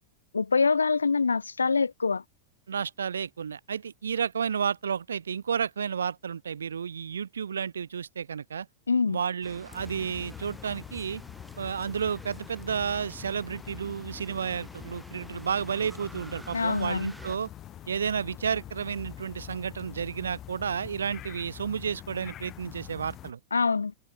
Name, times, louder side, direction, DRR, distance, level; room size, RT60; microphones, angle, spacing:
voice 1, 0.3-2.2 8.9-9.2 16.5-17.1 23.5-23.9, left 4 dB, 75° left, 0.3 m, -25 dB
voice 2, 2.7-8.7 9.1-11.2 11.6-17.5 17.9-23.4, right 7 dB, 70° right, 1.9 m, -31 dB
sound 1, 9.4-17.4, right 1 dB, 5° right, 4.3 m, -49 dB
sound 2, 9.7-23.3, left 12 dB, 30° left, 3.8 m, -45 dB
figure-of-eight pair, 90°, 0 cm